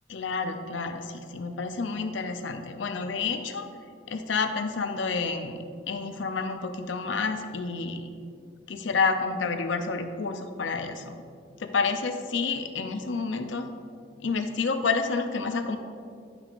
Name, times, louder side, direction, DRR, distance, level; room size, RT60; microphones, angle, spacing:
voice 1, 0.1-3.7 4.1-5.6 5.9-8.1 8.7-11.2 11.6-13.7 14.2-15.8, left 4 dB, 85° left, 7 dB, 0.6 m, -29 dB
11.0 x 5.9 x 2.5 m, 2.3 s
head